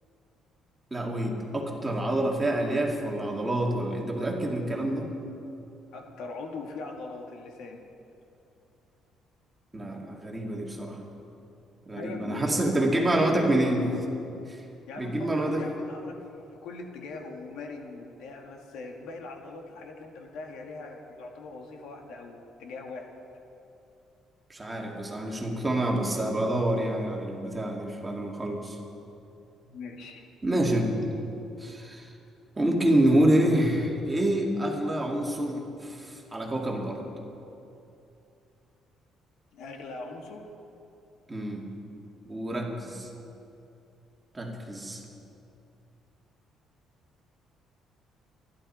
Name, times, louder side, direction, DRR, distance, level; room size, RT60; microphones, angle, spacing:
voice 1, 0.9-5.1 9.7-11.0 11.9-13.9 14.5-14.6 15.0-15.6 24.5-28.8 30.4-31.1 31.6-32.1 32.6-37.0 41.3-41.6 42.3-43.1 44.3-45.0, right 1 dB, 15° right, -1 dB, 2.2 m, -27 dB
voice 2, 5.9-7.8 11.9-13.6 14.9-23.1 29.6-30.2 39.5-40.5, left 3 dB, 80° left, 2 dB, 2.0 m, -41 dB
25.5 x 11.5 x 4.4 m, 2.7 s
cardioid pair, 135°, 0 cm